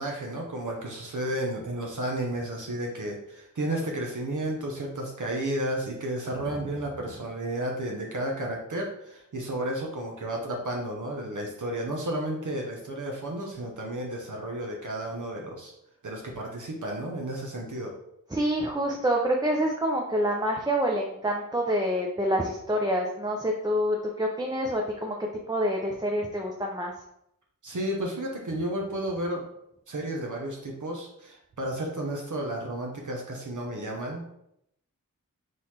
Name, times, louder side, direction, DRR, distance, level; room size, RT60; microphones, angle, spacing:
voice 1, 0.0-15.7 16.0-17.9 27.6-29.4 29.9-34.2, right 1 dB, 65° right, 0 dB, 0.9 m, -32 dB
voice 2, 18.3-25.2 25.5-26.9, equal, 10° right, 0 dB, 0.6 m, -27 dB
3.9 x 3.2 x 4.2 m, 0.78 s
wide cardioid pair, 65°, 33 cm